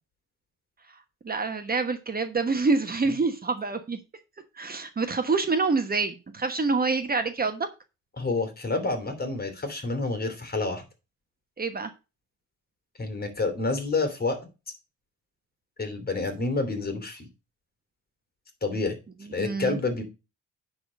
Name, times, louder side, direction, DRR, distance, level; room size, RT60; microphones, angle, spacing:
voice 1, 1.2-4.0 4.6-7.7 11.6-11.9 19.4-19.8, right 4 dB, 30° right, 7 dB, 1.1 m, -26 dB
voice 2, 8.2-10.8 13.0-14.4 15.8-17.3 18.6-19.0 19.3-20.0, left 3 dB, 30° left, 7 dB, 2.9 m, -28 dB
9.8 x 3.9 x 6.3 m, 0.29 s
cardioid pair, 90°, 30 cm